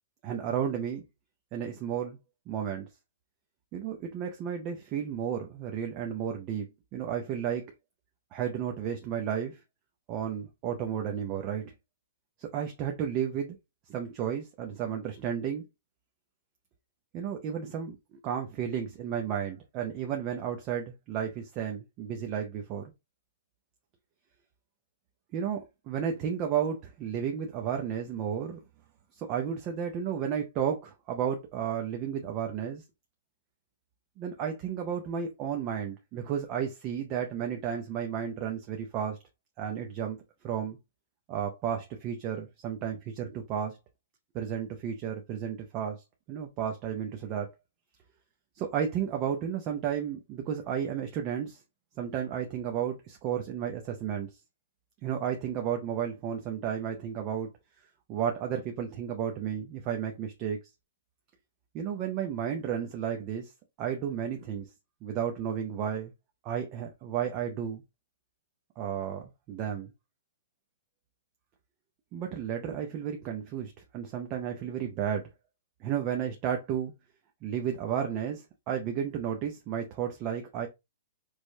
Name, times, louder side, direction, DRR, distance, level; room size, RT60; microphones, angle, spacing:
voice 1, 0.2-1.0 1.5-2.2 2.5-2.9 3.7-6.7 6.9-7.6 8.3-9.6 10.1-11.7 12.4-13.6 13.9-15.6 17.1-22.9 25.3-25.6 25.9-28.6 29.1-32.8 34.2-39.2 39.6-40.2 40.4-40.8 41.3-43.8 44.3-47.5 48.6-51.6 52.0-54.3 55.0-57.5 58.1-60.6 61.7-63.5 63.8-64.7 65.0-66.1 66.4-67.8 68.8-69.9 72.1-75.3 75.8-76.9 77.4-80.7, right 8 dB, 20° right, 0.4 m, -33 dB
4.6 x 2.1 x 2.6 m
hypercardioid pair, 180°, 0 cm